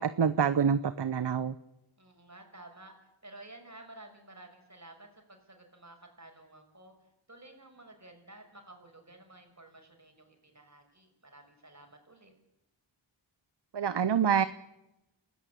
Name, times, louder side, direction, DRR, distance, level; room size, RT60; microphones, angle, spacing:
voice 1, 0.0-1.5 13.7-14.5, right 7 dB, 60° right, 14 dB, 0.9 m, -26 dB
voice 2, 2.0-3.0 3.2-6.9 7.3-12.3, right 2 dB, 35° right, 4 dB, 6.1 m, -53 dB
29.0 x 14.0 x 8.4 m, 0.92 s
wide cardioid pair, 55°, 48 cm